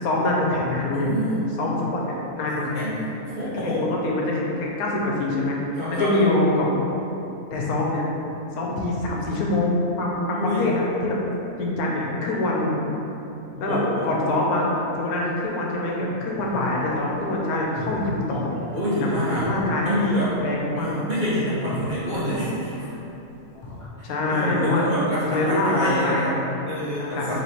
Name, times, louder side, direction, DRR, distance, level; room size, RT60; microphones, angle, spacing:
voice 1, 0.0-1.1 1.6-2.9 3.5-6.7 7.5-8.0 8.5-11.2 11.6-12.7 13.6-18.5 19.4-20.0 20.4-20.9 24.0-24.9 25.2-26.7 27.0-27.3, left 2 dB, 80° left, -2 dB, 1.1 m, -25 dB
voice 2, 0.9-1.4 2.5-3.1 3.4-3.9 5.8-6.1 10.1-10.7 13.5-14.1 18.7-19.5 19.8-20.4 20.7-22.9 24.0-26.3 26.7-27.3, equal, 45° right, -10 dB, 0.7 m, -27 dB
sound 1, 16.4-23.1 23.4-23.9, left 1 dB, 50° left, 0.4 m, -39 dB
3.2 x 3.0 x 4.2 m, 3.0 s
omnidirectional pair, 1.5 m